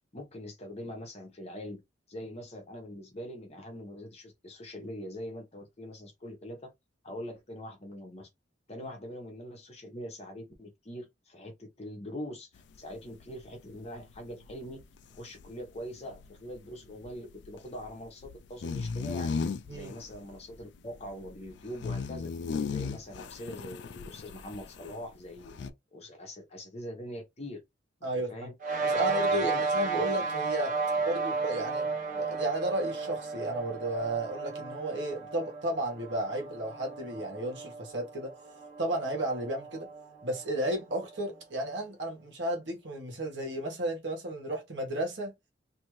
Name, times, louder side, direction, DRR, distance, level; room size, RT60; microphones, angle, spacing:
voice 1, 0.1-1.8 2.1-6.7 7.0-8.3 8.7-14.8 15.1-19.3 19.7-22.3 22.7-27.6 28.0-28.5 28.9-29.7, equal, 35° left, 1.0 m, -43 dB
sound 1, 12.6-25.0 25.3-25.7, left 5 dB, 65° left, 0.3 m, -37 dB
voice 2, 28.0-28.5 28.8-38.3 38.8-39.9 40.2-45.3, right 1 dB, 65° right, 1.4 m, -33 dB
sound 2, 28.6-41.3, right 4 dB, 45° right, 0.8 m, -33 dB
2.8 x 2.6 x 3.0 m
head